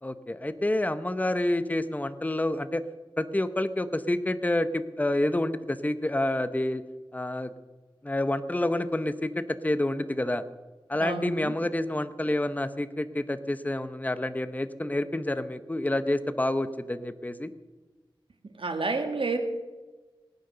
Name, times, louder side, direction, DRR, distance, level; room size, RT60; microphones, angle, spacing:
voice 1, 0.0-2.8 3.2-6.8 7.1-7.5 8.0-10.4 10.9-17.5, left 1 dB, 20° left, 12 dB, 0.8 m, -28 dB
voice 2, 11.0-11.5 18.4-19.4, right 3 dB, 85° right, 6 dB, 1.8 m, -30 dB
20.0 x 9.5 x 6.8 m, 1.3 s
wide cardioid pair, 70°, 9 cm